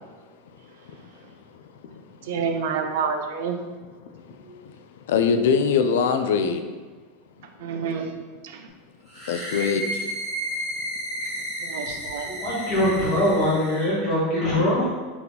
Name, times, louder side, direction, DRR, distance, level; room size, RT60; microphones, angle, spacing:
voice 1, 2.2-3.6 4.4-4.6 7.6-8.1 8.4-8.6 11.6-12.3, right 6 dB, 65° right, 5 dB, 0.5 m, -28 dB
voice 2, 5.1-6.6 9.3-10.1, left 6 dB, 85° left, 8 dB, 0.3 m, -22 dB
sound 1, 9.1-13.9, equal, 15° right, 1.3 m, -32 dB
voice 3, 12.2-14.9, left 1 dB, 35° left, -8 dB, 1.2 m, -22 dB
3.5 x 2.9 x 3.9 m, 1.4 s
supercardioid pair, 180°, 0 cm